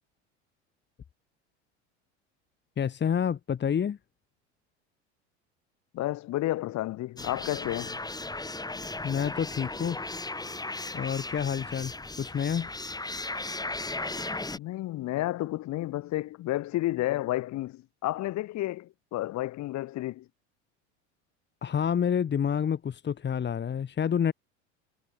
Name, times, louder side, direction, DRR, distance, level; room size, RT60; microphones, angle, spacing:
voice 1, 2.8-4.0 9.0-10.0 10.9-12.7 21.6-24.3, left 8 dB, 30° left, 2.8 m, -28 dB
voice 2, 5.9-8.0 14.5-20.3, left 16 dB, 55° left, 7.2 m, -31 dB
sound 1, 7.2-14.6, left 2 dB, 10° left, 7.4 m, -36 dB
hypercardioid pair, 80°, 34 cm